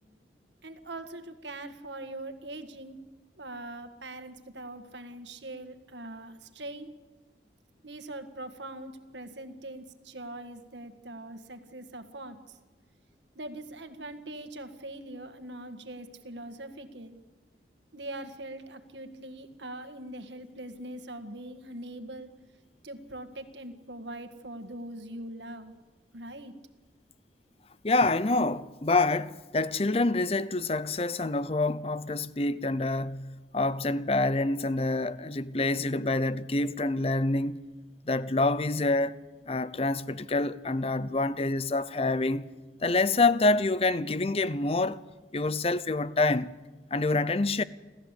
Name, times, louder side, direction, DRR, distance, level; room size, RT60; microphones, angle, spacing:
voice 1, 0.6-3.0 3.4-6.9 7.8-12.6 13.4-17.2 17.9-22.3 22.8-25.7 26.1-26.6, right 1 dB, 90° right, 1.8 m, -42 dB
voice 2, 27.8-37.6 38.1-39.2 39.5-42.5 42.8-45.0 45.3-46.5 46.9-47.6, left 2 dB, 35° left, 0.6 m, -27 dB
28.5 x 14.0 x 8.3 m
head